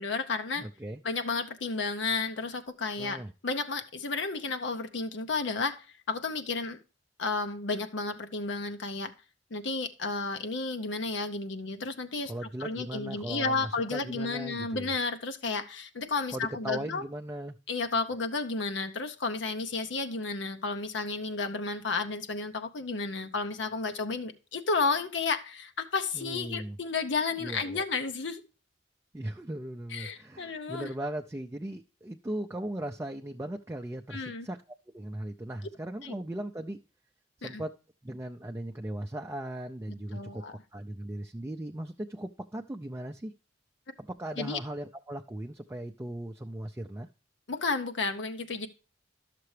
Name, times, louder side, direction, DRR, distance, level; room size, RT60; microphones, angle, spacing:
voice 1, 0.0-0.7 1.0-6.8 7.2-9.1 9.5-12.3 12.6-17.0 17.7-28.4 29.9-30.9 34.1-34.5 36.0-36.1 37.4-37.6 40.1-40.6 44.4-44.6 47.5-48.7, left 4 dB, 80° left, 0.8 m, -32 dB
voice 2, 0.6-1.0 3.0-3.3 12.3-14.9 16.3-17.6 26.1-26.8 27.4-27.8 29.1-34.6 34.9-36.8 37.4-37.7 38.0-40.4 40.7-43.3 44.0-47.1, right 1 dB, 15° right, 0.4 m, -38 dB
12.0 x 6.7 x 3.2 m
head